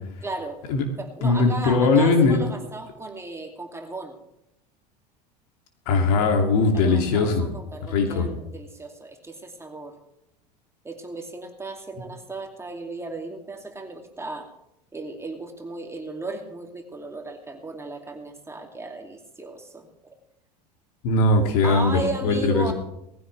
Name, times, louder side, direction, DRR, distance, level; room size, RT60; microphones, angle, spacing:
voice 1, 0.2-0.6 1.0-4.2 6.7-10.0 10.8-14.5 14.9-20.2 21.6-22.7, right 2 dB, 10° right, 3 dB, 2.6 m, -35 dB
voice 2, 1.2-2.4 5.9-7.5 7.9-8.3 21.0-22.7, left 3 dB, 60° left, 4 dB, 2.7 m, -20 dB
19.0 x 15.5 x 3.4 m, 0.82 s
figure-of-eight pair, 75°, 21 cm